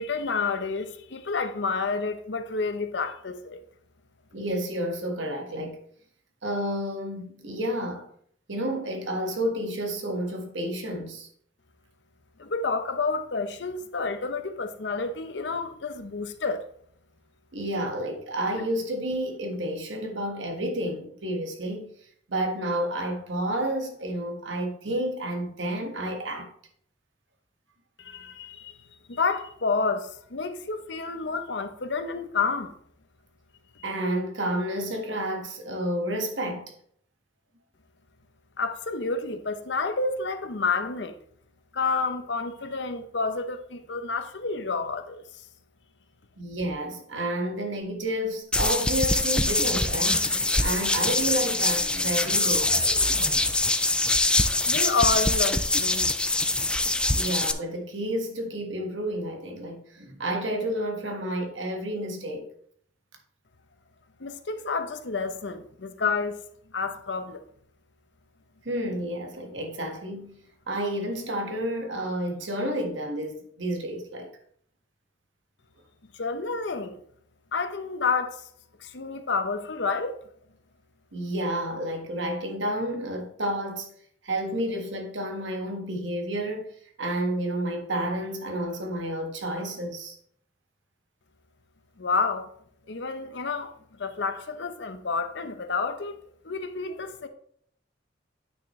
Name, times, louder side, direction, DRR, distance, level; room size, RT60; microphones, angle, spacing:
voice 1, 0.0-3.6 12.4-16.6 28.0-28.8 29.1-32.8 33.8-33.9 38.6-41.1 41.7-45.4 54.6-56.1 64.2-66.4 66.7-67.4 76.1-77.0 77.5-78.4 78.8-80.2 92.0-92.5 92.9-96.2 96.4-97.3, left 4 dB, 70° left, 0.8 m, -29 dB
voice 2, 4.3-5.8 6.4-8.1 8.5-11.3 17.5-21.9 22.3-26.5 33.8-36.7 46.4-52.8 57.1-62.5 68.6-70.4 70.7-74.3 81.1-83.9 84.2-86.7 87.0-90.2, right 1 dB, 80° right, 1.6 m, -30 dB
sound 1, 48.5-57.5, left 2 dB, 5° left, 0.3 m, -24 dB
sound 2, 49.5-53.7, equal, 40° right, 1.6 m, -40 dB
9.2 x 6.1 x 3.2 m
head